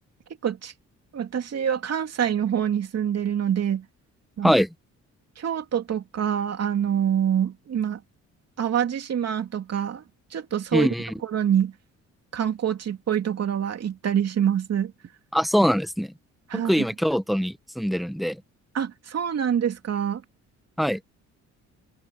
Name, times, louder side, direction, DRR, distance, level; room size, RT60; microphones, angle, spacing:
voice 1, 0.4-0.7 1.1-3.9 4.4-4.6 5.4-8.0 8.6-10.0 10.3-10.9 11.2-11.7 12.3-14.9 16.5-16.8 18.7-20.2, right 9 dB, 55° right, 2.9 m, -25 dB
voice 2, 10.7-11.1 15.3-16.1 16.5-18.4 20.8-21.0, equal, ahead, 1.2 m, -23 dB
cardioid pair, 90°, 30 cm